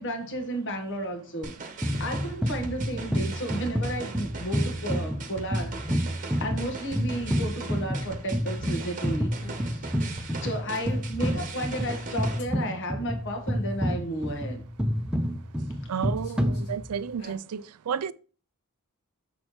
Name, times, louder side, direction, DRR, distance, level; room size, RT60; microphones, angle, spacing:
voice 1, 0.0-1.5 2.0-6.1 6.4-9.3 9.6-9.9 10.4-14.6, right 1 dB, 55° left, 1.4 m, -33 dB
sound 1, 1.4-12.4, right 3 dB, 35° right, 1.0 m, -39 dB
sound 2, 1.8-17.2, equal, 5° right, 0.7 m, -30 dB
sound 3, 1.9-2.3 4.6-5.2 6.9-7.5 9.4-9.8 10.8-11.4 12.4-12.5 14.1-14.4 15.1-15.6 16.0-16.7 17.0-17.4, left 1 dB, 80° left, 2.1 m, -49 dB
voice 2, 15.9-18.1, right 7 dB, 75° right, 0.4 m, -32 dB
7.3 x 6.4 x 3.1 m
head